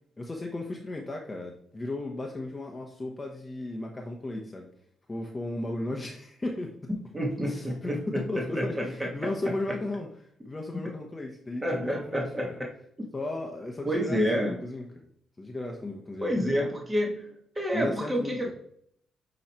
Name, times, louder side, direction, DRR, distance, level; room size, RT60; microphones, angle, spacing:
voice 1, 0.2-4.7 5.1-6.8 7.4-12.6 13.1-14.2 14.5-15.1 15.4-16.3 17.7-18.5, left 2 dB, 20° left, 0 dB, 1.0 m, -35 dB
voice 2, 7.1-9.1 11.6-12.7 13.8-14.6 16.2-17.3 17.5-18.5, equal, 15° right, -1 dB, 1.5 m, -29 dB
8.4 x 3.2 x 4.3 m, 0.66 s
cardioid pair, 90°, 0 cm